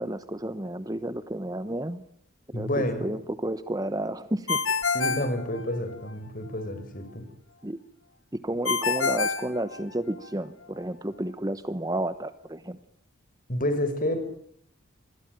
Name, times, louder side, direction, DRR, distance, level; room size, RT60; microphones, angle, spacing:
voice 1, 0.0-2.0 2.5-4.6 7.6-7.8 8.4-12.8, right 1 dB, 20° right, 13 dB, 1.0 m, -31 dB
voice 2, 2.5-3.1 4.9-7.2 13.5-14.2, left 1 dB, 40° left, 10 dB, 5.3 m, -29 dB
Ringtone, 4.5-6.1 8.7-10.3, left 4 dB, 70° left, 2.2 m, -27 dB
27.0 x 21.0 x 9.1 m, 0.68 s
head